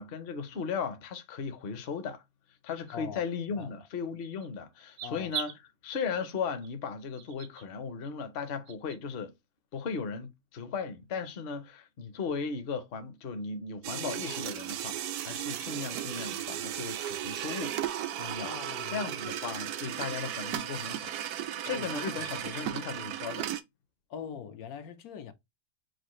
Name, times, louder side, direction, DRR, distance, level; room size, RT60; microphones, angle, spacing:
voice 1, 0.0-2.2 2.6-9.3 9.7-17.8 18.2-18.5 18.9-21.1 21.6-23.5, left 5 dB, 50° left, 0.7 m, -36 dB
sound 1, 1.8-1.9 2.7-2.9 3.6-3.7 4.2-4.5 4.8-5.6 5.9-6.2 6.6-6.7 7.2-7.7 8.0-8.1 8.7-9.0, right 8 dB, 60° right, 0.7 m, -40 dB
voice 2, 2.9-3.2 3.6-3.7 5.0-5.3 18.4-19.4 21.7-21.9 22.2-22.3 24.1-25.3, left 7 dB, 80° left, 1.1 m, -42 dB
sound 2, 13.8-23.6, right 11 dB, 90° right, 1.1 m, -35 dB
6.1 x 2.4 x 3.0 m
omnidirectional pair, 1.6 m